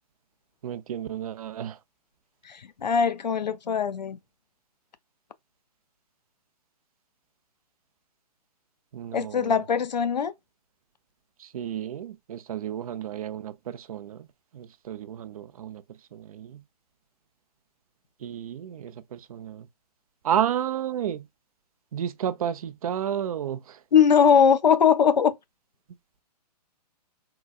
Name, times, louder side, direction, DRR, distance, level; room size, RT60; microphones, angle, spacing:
voice 1, 0.6-1.8 8.9-9.7 11.4-14.3 14.5-15.8 16.1-16.6 18.2-19.7 20.2-21.3 21.9-23.8, right 9 dB, 60° right, 0.5 m, -32 dB
voice 2, 2.8-4.2 9.1-10.3 23.9-25.3, left 7 dB, 85° left, 0.4 m, -20 dB
3.8 x 2.3 x 2.3 m
figure-of-eight pair, 125°, 21 cm